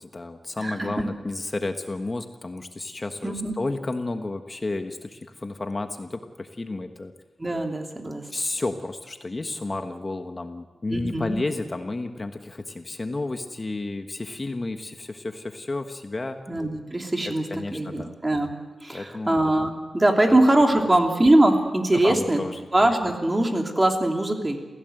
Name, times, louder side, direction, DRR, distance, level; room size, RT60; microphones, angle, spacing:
voice 1, 0.0-7.1 8.3-16.4 17.3-18.2 18.9-19.4 20.3-20.4 21.9-22.7, left 2 dB, 30° left, 6 dB, 1.3 m, -32 dB
voice 2, 0.6-0.9 3.2-3.5 7.4-8.2 10.9-11.4 16.5-17.4 17.7-18.5 18.8-22.4 22.7-24.6, right 1 dB, 20° right, 3 dB, 3.0 m, -22 dB
27.5 x 16.5 x 7.9 m, 1.2 s
wide cardioid pair, 85°, 0 cm